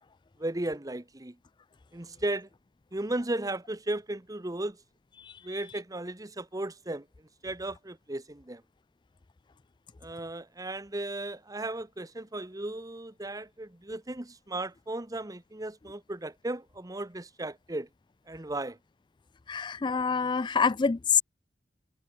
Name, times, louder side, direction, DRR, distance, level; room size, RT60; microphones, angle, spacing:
voice 1, 0.4-1.3 1.9-2.5 2.9-4.8 5.4-7.0 7.4-8.6 10.0-17.9 18.3-18.8, right 1 dB, 20° right, 1.0 m, -35 dB
voice 2, 19.5-21.2, left 6 dB, 25° left, 0.4 m, -26 dB
head